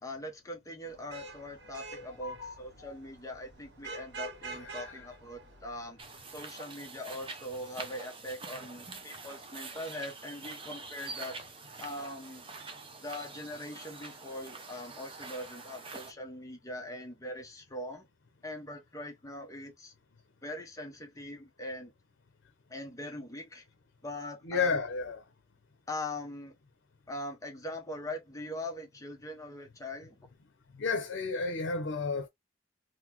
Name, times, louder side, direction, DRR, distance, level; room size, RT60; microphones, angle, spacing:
voice 1, 0.0-6.0 6.3-11.5 11.8-12.4 13.0-18.1 18.4-19.9 20.4-21.9 22.7-23.7 24.0-24.8 25.9-26.6 27.1-30.2, left 1 dB, 20° left, 0.7 m, -41 dB
Vehicle horn car horn honking / Traffic noise roadway noise, 0.9-6.1, right 3 dB, 65° right, 0.9 m, -47 dB
voice 2, 2.0-3.0 4.6-5.1 24.4-25.2 30.8-32.3, left 4 dB, 85° left, 0.6 m, -33 dB
sound 1, 6.0-16.1, right 4 dB, 30° right, 0.7 m, -45 dB
3.9 x 2.1 x 2.8 m
head